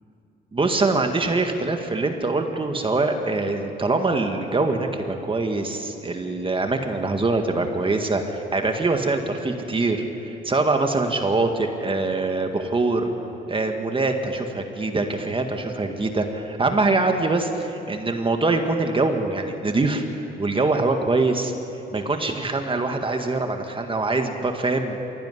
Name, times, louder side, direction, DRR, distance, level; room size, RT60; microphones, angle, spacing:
voice 1, 0.5-13.1 13.5-20.0 20.4-21.5 21.9-25.0, right 3 dB, 25° right, 5 dB, 1.9 m, -23 dB
23.0 x 16.5 x 9.9 m, 2.9 s
cardioid pair, 90°, 20 cm